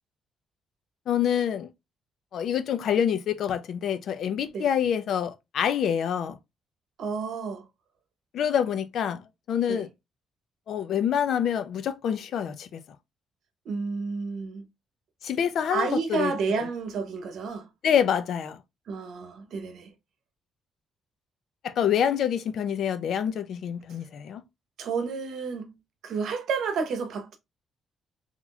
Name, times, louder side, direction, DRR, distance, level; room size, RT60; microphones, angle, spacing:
voice 1, 1.1-1.7 2.3-6.4 8.3-9.9 10.7-12.8 15.2-16.7 17.8-18.6 21.6-24.4, left 8 dB, 70° left, 0.5 m, -26 dB
voice 2, 7.0-7.6 9.7-9.8 13.7-14.7 15.7-17.7 18.9-19.9 24.8-25.7 26.0-27.4, right 5 dB, 70° right, 0.8 m, -30 dB
3.9 x 3.0 x 2.3 m
cardioid pair, 90°, 0 cm